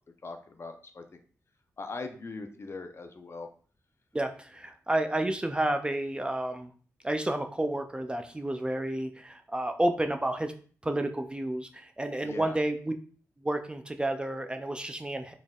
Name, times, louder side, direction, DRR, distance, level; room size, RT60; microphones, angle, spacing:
voice 1, 0.2-1.0 1.8-3.5 12.2-12.6, left 3 dB, 45° left, 6 dB, 0.5 m, -40 dB
voice 2, 4.1-6.7 7.0-10.5 10.8-12.9 13.4-15.3, right 1 dB, 15° right, 6 dB, 0.4 m, -30 dB
4.0 x 3.4 x 2.3 m, 0.43 s
cardioid pair, 80°, 6 cm